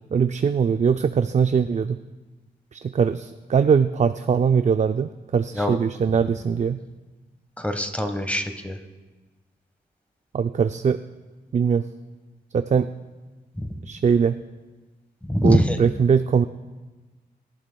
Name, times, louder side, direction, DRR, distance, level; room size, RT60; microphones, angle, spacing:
voice 1, 0.1-2.0 2.7-6.8 10.3-11.0 11.5-11.9 12.5-12.9 13.8-14.4 15.4-16.5, right 6 dB, 40° right, 10 dB, 0.4 m, -21 dB
voice 2, 7.6-8.8 13.6-13.7 15.2-15.8, left 1 dB, 10° left, 6 dB, 1.3 m, -23 dB
21.5 x 11.5 x 2.3 m, 1.2 s
cardioid pair, 70°, 18 cm